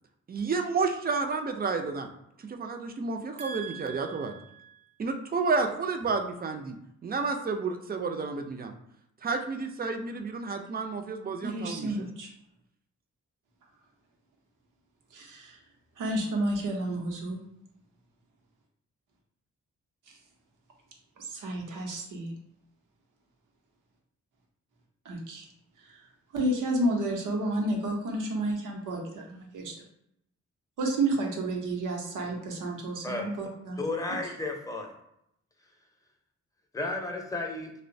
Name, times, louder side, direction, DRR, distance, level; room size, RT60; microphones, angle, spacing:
voice 1, 0.3-2.1 2.5-4.3 5.0-6.7 7.0-8.7 9.2-11.9, right 4 dB, 30° right, 5 dB, 0.4 m, -30 dB
voice 2, 3.4-4.8 11.4-12.3 15.1-15.6 16.0-17.4 21.3-22.3 25.0-25.5 25.8-26.0 26.3-29.7 30.8-33.8, right 1 dB, 85° right, 0 dB, 0.7 m, -31 dB
voice 3, 33.8-34.9 36.7-37.7, left 2 dB, 10° left, 1 dB, 0.6 m, -33 dB
2.8 x 2.1 x 2.6 m, 0.77 s
cardioid pair, 60°, 30 cm